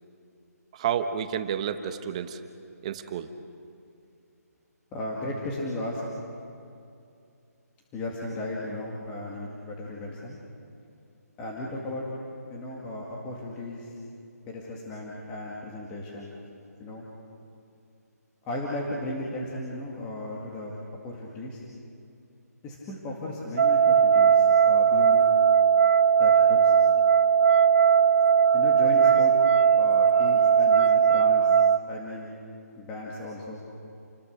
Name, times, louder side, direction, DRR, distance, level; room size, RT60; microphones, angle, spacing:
voice 1, 0.7-2.4 2.8-3.3, right 8 dB, 25° right, 8 dB, 1.1 m, -30 dB
voice 2, 4.9-6.0 7.9-10.4 11.4-12.1 12.5-13.9 14.5-16.3 16.8-17.1 18.5-20.7 21.0-21.6 22.6-25.3 26.2-26.7 28.5-29.3 29.8-31.6 31.9-32.3 32.8-33.6, left 1 dB, 15° left, -3 dB, 2.1 m, -35 dB
sound 1, 23.6-31.8, right 7 dB, 45° right, 0.5 m, -19 dB
29.0 x 21.0 x 6.7 m, 2.5 s
hypercardioid pair, 165°, 9 cm